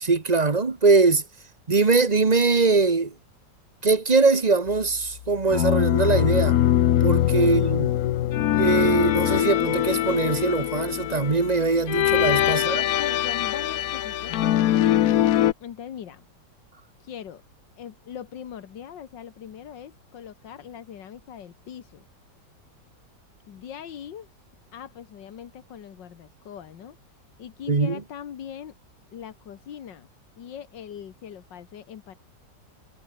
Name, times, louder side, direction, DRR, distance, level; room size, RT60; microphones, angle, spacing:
voice 1, 0.0-1.2 1.7-3.1 3.8-6.6 7.0-7.9 8.6-12.8 27.7-28.0, right 4 dB, 25° right, 1.2 m, -21 dB
sound 1, 5.5-15.5, left 12 dB, 65° left, 1.1 m, -22 dB
voice 2, 7.4-7.8 12.5-15.2 15.6-16.2 17.0-17.4 17.8-22.1 23.5-24.3 24.7-27.0 27.4-28.7 29.1-30.1 30.4-32.1, left 9 dB, 85° left, 2.0 m, -41 dB
omnidirectional pair, 1.9 m